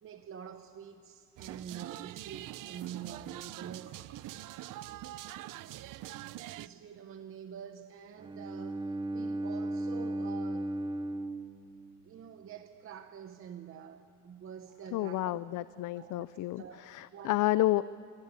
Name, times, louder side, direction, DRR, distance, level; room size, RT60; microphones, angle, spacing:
voice 1, 0.0-4.3 6.3-10.7 12.0-15.4 15.9-16.3 16.6-17.6, right 8 dB, 45° right, 7 dB, 0.9 m, -47 dB
sound 1, 1.4-6.7, right 14 dB, 80° right, 0.7 m, -44 dB
Bowed string instrument, 8.2-12.3, right 1 dB, 15° right, 0.8 m, -36 dB
voice 2, 14.9-17.8, left 16 dB, 70° left, 16 dB, 0.5 m, -30 dB
27.5 x 22.5 x 8.3 m, 2.6 s
cardioid pair, 180°, 32 cm